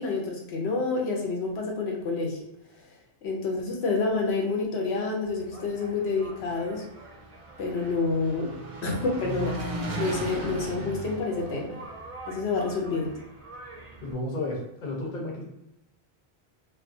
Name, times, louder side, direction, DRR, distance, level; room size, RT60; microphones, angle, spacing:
voice 1, 0.0-2.4 3.2-6.8 7.6-8.5 8.8-11.8 12.3-13.2, left 3 dB, 90° left, -1 dB, 0.9 m, -28 dB
Engine, 5.3-14.1, right 2 dB, 55° right, 0.4 m, -38 dB
voice 2, 14.0-15.4, left 2 dB, 55° left, -2 dB, 0.8 m, -32 dB
2.3 x 2.2 x 2.5 m, 0.88 s
omnidirectional pair, 1.1 m